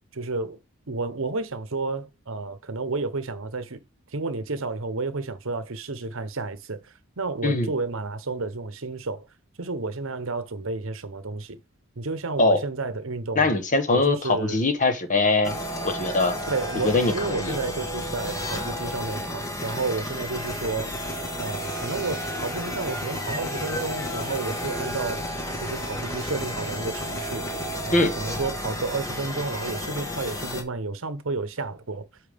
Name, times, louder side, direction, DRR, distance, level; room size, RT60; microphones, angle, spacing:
voice 1, 0.1-0.6 0.9-3.8 4.1-9.2 9.6-11.6 12.0-13.5 13.9-14.6 16.5-21.0 21.4-25.3 25.6-27.5 27.9-32.1, right 3 dB, 65° right, 0.9 m, -31 dB
voice 2, 13.4-15.6 15.8-16.4 16.8-17.6 27.9-28.1, left 2 dB, 35° left, 1.0 m, -22 dB
sound 1, 15.4-30.6, equal, 15° left, 1.1 m, -32 dB
8.8 x 4.7 x 3.5 m
head